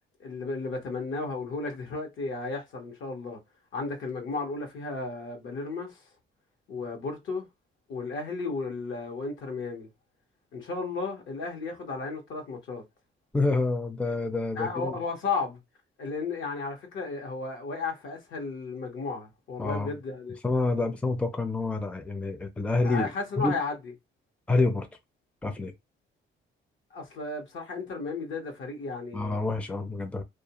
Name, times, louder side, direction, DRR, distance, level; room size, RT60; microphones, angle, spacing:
voice 1, 0.2-3.4 3.7-6.0 6.7-7.5 7.9-9.9 10.5-12.8 14.5-15.6 16.0-20.4 22.8-23.8 26.9-29.4, left 4 dB, 75° left, 1.0 m, -34 dB
voice 2, 13.3-14.9 19.6-19.9 20.4-23.1 23.4-23.5 24.5-24.9 25.4-25.7 29.1-30.2, left 3 dB, 5° left, 0.4 m, -27 dB
2.4 x 2.2 x 2.9 m
cardioid pair, 90°, 20 cm